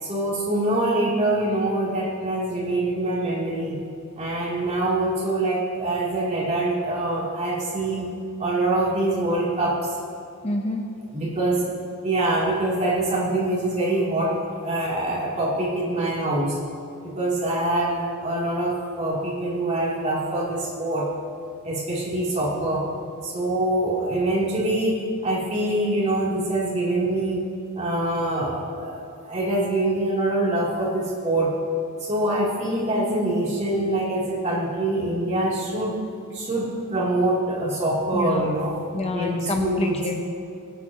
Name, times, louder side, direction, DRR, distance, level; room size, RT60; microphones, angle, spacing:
voice 1, 0.0-3.8 4.2-8.1 8.4-9.9 11.1-11.6 12.0-14.3 14.6-16.6 17.0-21.1 21.6-22.8 23.2-27.4 27.8-31.5 32.0-36.0 36.3-38.8 39.1-40.0, right 1 dB, 30° right, -6 dB, 2.9 m, -24 dB
voice 2, 10.4-10.9 38.1-38.5 38.9-40.2, left 2 dB, 30° left, 3 dB, 0.7 m, -27 dB
23.0 x 8.2 x 2.9 m, 2.5 s
head